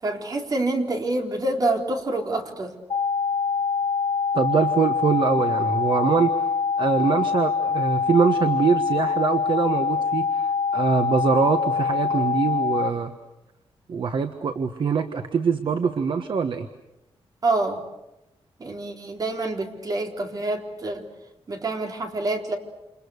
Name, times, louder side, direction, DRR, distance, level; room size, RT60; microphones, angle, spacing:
voice 1, 0.0-2.7 17.4-17.8 18.6-21.1 21.5-22.6, right 2 dB, 40° right, 2 dB, 3.8 m, -26 dB
sound 1, 2.9-12.9, left 5 dB, 60° left, 2.9 m, -24 dB
voice 2, 4.3-6.3 6.8-13.1 13.9-16.7, right 5 dB, 55° right, 7 dB, 1.4 m, -23 dB
29.0 x 28.5 x 6.6 m, 0.93 s
wide cardioid pair, 160°, 10 cm